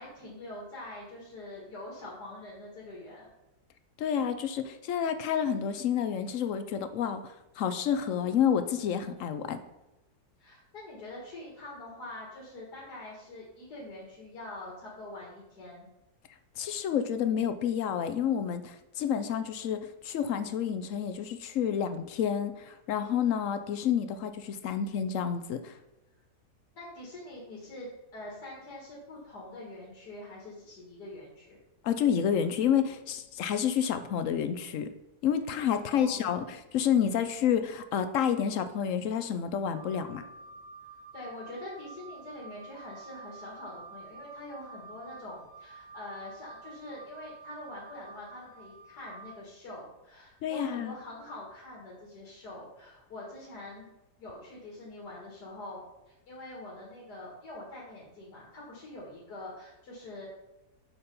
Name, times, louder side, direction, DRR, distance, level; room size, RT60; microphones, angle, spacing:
voice 1, 0.0-3.3 10.4-15.9 26.8-31.6 35.9-36.4 41.1-53.9 54.2-60.3, left 1 dB, 85° left, -4 dB, 2.3 m, -44 dB
voice 2, 4.0-9.6 16.6-25.7 31.8-34.9 35.2-40.2 50.4-50.9, left 8 dB, 65° left, 10 dB, 0.9 m, -29 dB
Wind instrument woodwind instrument, 39.7-49.3, right 4 dB, 65° right, 1.9 m, -49 dB
7.2 x 5.0 x 5.3 m, 0.98 s
omnidirectional pair, 1.7 m